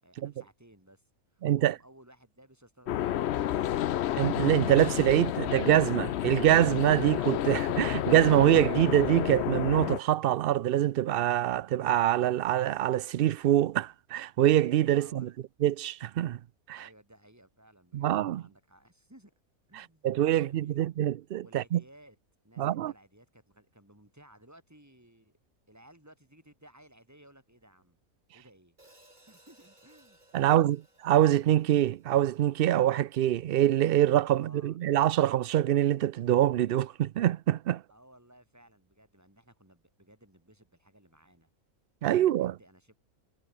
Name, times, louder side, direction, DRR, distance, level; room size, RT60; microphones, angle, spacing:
voice 1, 0.0-3.8 15.0-15.3 16.7-19.3 19.7-20.9 21.4-22.2 22.4-25.4 25.7-28.0 28.3-28.8 29.3-30.8 34.3-34.8 37.9-41.5 42.1-43.0, right 1 dB, 10° right, 5.1 m, -58 dB
voice 2, 1.4-1.8 4.1-15.3 15.6-16.4 16.7-16.8 17.9-18.4 19.8-21.8 22.6-22.9 30.3-30.8 31.1-37.8 42.0-42.5, right 12 dB, 80° right, 0.5 m, -25 dB
sound 1, 2.9-10.0, left 12 dB, 60° left, 0.7 m, -30 dB
Hi-hat, 28.8-33.1, right 1 dB, 30° right, 5.2 m, -62 dB
omnidirectional pair, 1.5 m